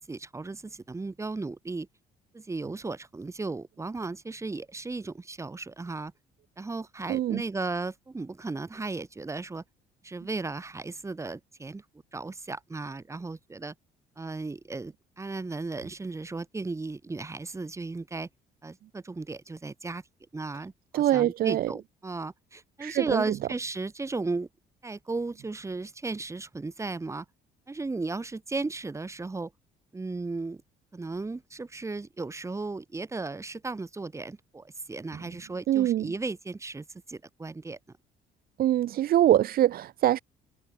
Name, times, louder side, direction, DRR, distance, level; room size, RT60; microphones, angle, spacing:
voice 1, 0.1-1.9 2.3-6.1 6.6-9.6 10.0-11.8 12.1-13.7 14.2-18.3 18.6-20.0 20.3-24.5 24.8-27.2 27.7-29.5 29.9-30.6 30.9-37.8, right 3 dB, 15° right, 2.9 m, -35 dB
voice 2, 7.1-7.4 20.9-21.7 22.8-23.4 35.7-36.1 38.6-40.2, right 12 dB, 60° right, 1.2 m, -24 dB
open air
cardioid pair, 110°, 17 cm